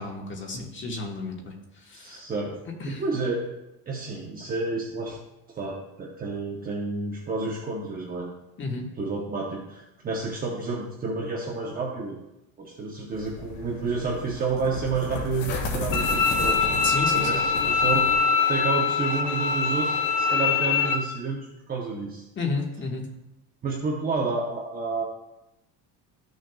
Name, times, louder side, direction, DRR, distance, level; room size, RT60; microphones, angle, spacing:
voice 1, 0.0-2.2 2.8-3.0 8.6-8.9 16.8-17.4 22.4-23.1, left 3 dB, 30° left, 0 dB, 1.6 m, -32 dB
voice 2, 1.9-2.6 2.8-3.5 3.9-5.2 5.5-8.3 8.8-12.2 12.6-16.7 17.1-18.1 18.5-22.2 23.6-25.0, right 4 dB, 20° right, -1 dB, 0.9 m, -30 dB
sound 1, 13.1-18.2, left 3 dB, 55° left, 1.9 m, -34 dB
Bowed string instrument, 15.9-20.9, left 5 dB, 75° left, 1.6 m, -23 dB
13.5 x 6.4 x 2.3 m, 0.91 s
cardioid pair, 150°, 39 cm